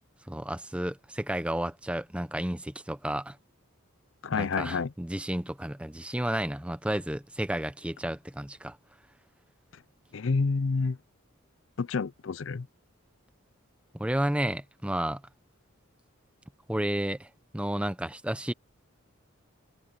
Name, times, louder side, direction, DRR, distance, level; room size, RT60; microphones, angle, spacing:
voice 1, 0.3-3.4 4.3-8.8 13.9-15.2 16.7-17.3 17.5-18.5, right 1 dB, 5° right, 0.6 m, -31 dB
voice 2, 4.2-4.9 10.1-11.0 11.8-12.7, left 4 dB, 60° left, 0.5 m, -28 dB
head